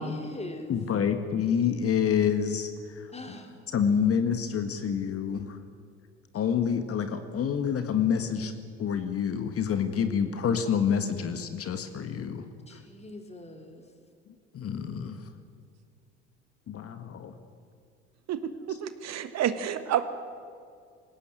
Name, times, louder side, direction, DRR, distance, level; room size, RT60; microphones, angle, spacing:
voice 1, 0.0-0.8 3.1-3.6 12.7-13.8, left 2 dB, 20° left, 4 dB, 3.6 m, -41 dB
voice 2, 0.7-2.7 3.7-5.6 6.3-8.5 8.8-12.5 14.5-15.2 16.7-17.3, left 7 dB, 45° left, 8 dB, 1.7 m, -27 dB
voice 3, 18.3-20.0, right 10 dB, 50° right, 11 dB, 1.4 m, -29 dB
20.0 x 17.5 x 9.1 m, 2.2 s
hypercardioid pair, 60°, 33 cm